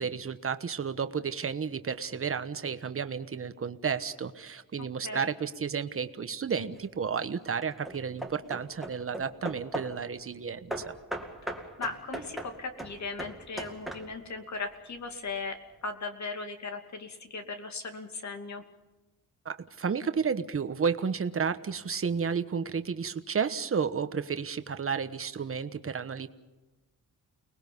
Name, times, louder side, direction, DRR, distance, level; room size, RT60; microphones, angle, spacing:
voice 1, 0.0-10.9 19.4-26.3, right 6 dB, 40° right, 10 dB, 1.2 m, -32 dB
Hammer / Wood, 6.5-7.0 7.6-10.1 10.7-14.4, right 1 dB, ahead, 2.2 m, -39 dB
voice 2, 11.8-18.6, left 4 dB, 50° left, 6 dB, 2.6 m, -38 dB
30.0 x 20.0 x 5.4 m, 1.1 s
wide cardioid pair, 135°, 36 cm